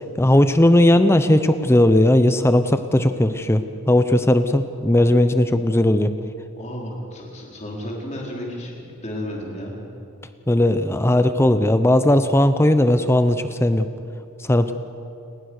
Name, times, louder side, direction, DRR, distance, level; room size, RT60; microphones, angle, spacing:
voice 1, 0.0-6.1 10.5-13.9 14.4-14.7, left 1 dB, 10° left, 10 dB, 0.7 m, -17 dB
voice 2, 6.5-8.7 9.0-9.7, equal, 30° left, -2 dB, 4.8 m, -32 dB
29.0 x 20.0 x 6.6 m, 2.6 s
head